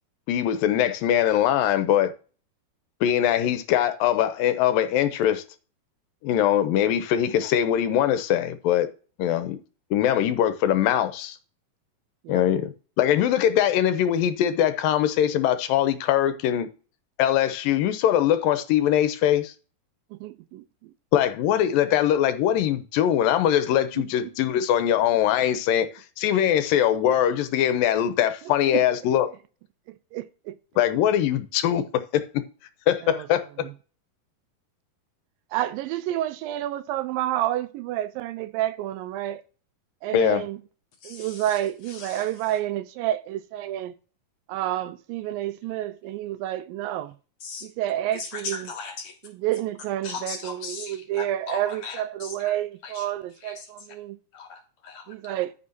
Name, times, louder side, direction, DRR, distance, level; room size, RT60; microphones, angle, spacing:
voice 1, 0.3-2.1 3.0-5.4 6.2-8.9 9.2-9.6 9.9-11.4 12.3-16.7 17.2-19.5 21.1-25.9 26.2-29.3 30.8-32.2 32.9-33.4 40.1-40.4, left 10 dB, 85° left, 2.3 m, -22 dB
voice 2, 20.1-20.9 24.0-24.1 28.7-28.8 30.1-30.6 33.0-33.3 33.6-33.7 35.5-39.4 40.0-40.6 41.1-43.9 44.5-47.1 47.6-48.7 49.2-54.2 55.1-55.5, right 13 dB, 80° right, 2.3 m, -29 dB
voice 3, 41.0-41.6 41.9-42.3 47.4-47.7 48.1-49.2 50.0-52.6 52.8-54.0 54.3-55.4, left 5 dB, 65° left, 1.8 m, -39 dB
13.5 x 5.7 x 2.8 m
omnidirectional pair, 4.1 m